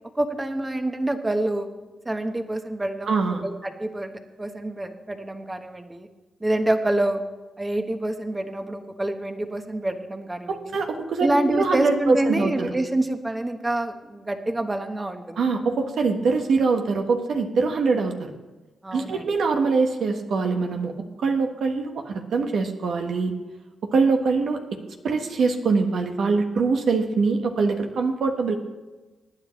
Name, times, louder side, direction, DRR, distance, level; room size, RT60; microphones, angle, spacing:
voice 1, 0.1-1.7 2.0-6.1 6.4-7.2 7.6-10.8 11.2-15.5 18.8-19.3, right 1 dB, 20° right, 7 dB, 1.3 m, -27 dB
voice 2, 3.1-3.4 10.5-12.7 15.4-18.3 18.9-20.9 21.2-23.3 23.9-24.6 25.0-28.5, right 4 dB, 75° right, 4 dB, 1.4 m, -23 dB
18.5 x 9.9 x 3.2 m, 1.2 s
cardioid pair, 65°, 0 cm